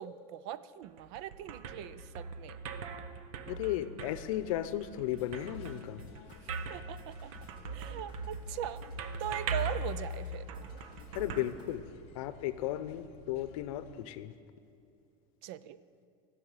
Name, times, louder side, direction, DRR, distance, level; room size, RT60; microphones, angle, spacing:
voice 1, 0.0-2.6 6.4-7.3 7.7-8.8 9.2-10.5 15.4-15.8, right 11 dB, 50° right, 16 dB, 0.4 m, -40 dB
sound 1, 0.8-12.3, right 3 dB, 85° right, 0.9 m, -41 dB
voice 2, 3.5-6.0 11.1-11.8 12.1-14.3, left 13 dB, 75° left, 13 dB, 0.7 m, -35 dB
sound 2, 4.0-14.0, left 9 dB, 40° left, 0.7 m, -56 dB
sound 3, 4.9-11.8, equal, 25° right, 2.4 m, -60 dB
15.0 x 7.0 x 9.0 m, 2.6 s
cardioid pair, 180°, 17 cm